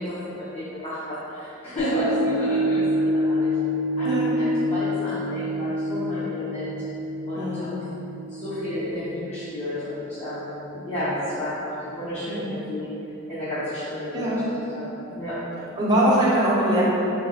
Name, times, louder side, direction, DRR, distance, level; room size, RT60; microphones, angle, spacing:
voice 1, 0.0-3.6 4.0-6.8 7.3-7.7 8.3-12.9 13.3-15.4 15.9-16.0, equal, 35° left, -13 dB, 0.6 m, -32 dB
sound 1, 1.8-10.2 10.7-10.8, equal, 80° left, 0.4 m, -27 dB
voice 2, 7.3-7.7 12.2-12.5 14.1-14.4 15.8-16.8, right 1 dB, 20° right, -7 dB, 0.6 m, -22 dB
3.9 x 2.2 x 2.6 m, 2.9 s
head